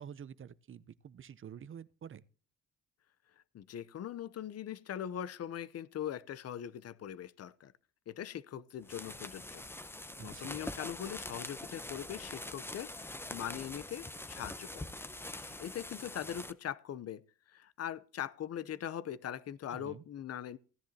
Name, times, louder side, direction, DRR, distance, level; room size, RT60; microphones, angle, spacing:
voice 1, 0.0-2.2 10.2-10.6 19.7-20.0, right 8 dB, 45° right, 0.7 m, -49 dB
voice 2, 3.5-7.7 8.1-9.6 10.2-14.9 15.3-17.2 17.5-20.6, left 10 dB, 55° left, 0.8 m, -41 dB
sound 1, 8.8-16.5, left 1 dB, 10° left, 0.8 m, -44 dB
16.5 x 10.5 x 2.8 m
cardioid pair, 90°, 30 cm